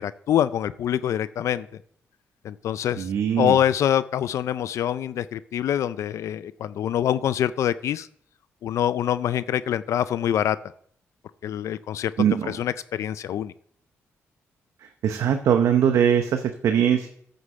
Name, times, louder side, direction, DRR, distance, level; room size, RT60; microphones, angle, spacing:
voice 1, 0.0-1.7 2.4-3.1 3.4-8.1 8.6-10.6 11.4-12.1 12.5-13.5, left 10 dB, 75° left, 15 dB, 0.4 m, -25 dB
voice 2, 3.0-3.6 12.2-12.5 15.0-17.1, right 8 dB, 75° right, 7 dB, 0.8 m, -21 dB
9.1 x 6.8 x 6.5 m, 0.64 s
cardioid pair, 90°, 5 cm